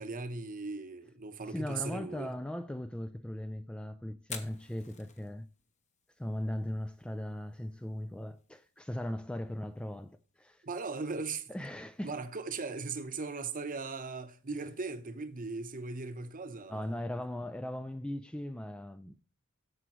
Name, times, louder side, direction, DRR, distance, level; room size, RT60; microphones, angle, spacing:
voice 1, 0.0-2.3 10.6-11.5 12.0-17.0, right 4 dB, 40° right, 0.9 m, -38 dB
voice 2, 1.5-5.5 6.2-10.6 11.5-12.1 16.7-19.1, left 1 dB, 5° left, 0.3 m, -38 dB
Fire, 4.2-18.1, left 6 dB, 35° left, 1.1 m, -56 dB
13.5 x 4.8 x 3.0 m
head